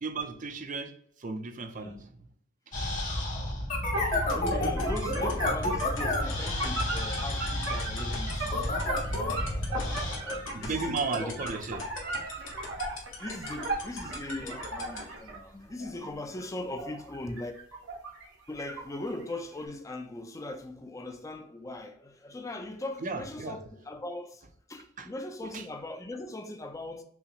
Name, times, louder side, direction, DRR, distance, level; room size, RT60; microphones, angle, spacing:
voice 1, 0.0-2.3 8.3-8.4 9.0-10.2 10.5-11.8 23.0-23.6 25.0-25.1 25.4-25.7, right 4 dB, 40° right, 0.5 m, -36 dB
sound 1, 2.7-10.2, left 1 dB, 40° left, 1.2 m, -30 dB
voice 2, 3.5-8.8 9.1-11.4 13.2-17.5 18.5-24.4 24.7-27.0, left 2 dB, 15° left, 0.4 m, -40 dB
sound 2, 3.9-15.4 15.8-18.3 18.6-19.4, right 2 dB, 85° right, 1.3 m, -37 dB
sound 3, 4.1-15.0, left 7 dB, 70° left, 1.2 m, -40 dB
5.6 x 2.0 x 2.5 m
head